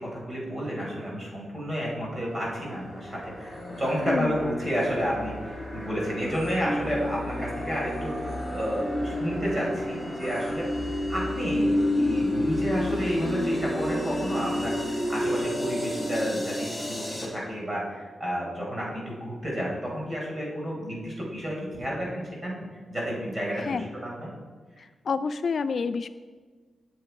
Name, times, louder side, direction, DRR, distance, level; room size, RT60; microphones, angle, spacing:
voice 1, 0.0-5.3 5.7-10.7 11.1-22.6 22.9-24.3, equal, 25° right, -3 dB, 4.0 m, -31 dB
sound 1, 2.3-17.3, left 1 dB, ahead, 2.6 m, -30 dB
sound 2, 3.4-4.1 4.6-5.2 6.3-8.8 10.2-10.5, equal, 80° right, 4.3 m, -45 dB
voice 2, 23.6-23.9 24.8-26.1, left 5 dB, 50° left, 11 dB, 0.3 m, -29 dB
19.0 x 7.0 x 4.6 m, 1.4 s
wide cardioid pair, 155°, 0 cm